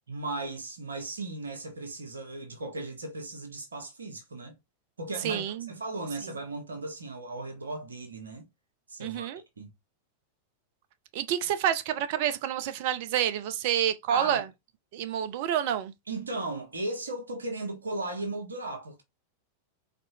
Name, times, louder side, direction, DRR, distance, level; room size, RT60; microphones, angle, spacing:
voice 1, 0.1-4.6 5.0-8.5 8.9-9.3 9.6-9.7 14.1-14.4 16.1-19.0, right 2 dB, 75° right, 1.5 m, -36 dB
voice 2, 5.2-5.7 6.2-6.3 9.0-9.4 11.1-14.5 14.9-15.9, right 10 dB, 50° right, 0.7 m, -28 dB
4.4 x 4.2 x 2.8 m
figure-of-eight pair, 90°, 0 cm